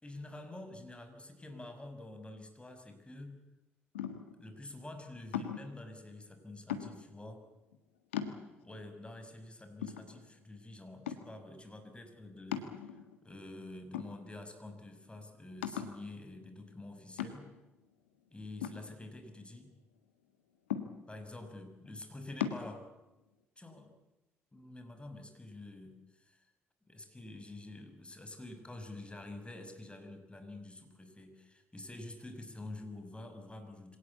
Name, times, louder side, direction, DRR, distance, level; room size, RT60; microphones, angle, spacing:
voice 1, 0.0-3.5 4.4-7.4 8.6-12.8 13.2-17.6 18.3-19.7 21.1-22.9 23.6-23.9 24.5-26.5 26.9-34.0, left 2 dB, 15° left, 7 dB, 6.2 m, -48 dB
sound 1, 4.0-4.4 5.3-5.8 6.7-7.2 7.7-7.8 8.1-8.8 9.3-9.4 9.8-10.6 11.1-11.5 12.5-13.2 13.9-14.6 14.9-15.0 15.6-16.1 17.2-17.7 18.6-19.5 20.7-21.3 22.4-22.7, left 9 dB, 85° left, 1.6 m, -38 dB
25.0 x 18.0 x 8.6 m, 0.98 s
hypercardioid pair, 45°, 6 cm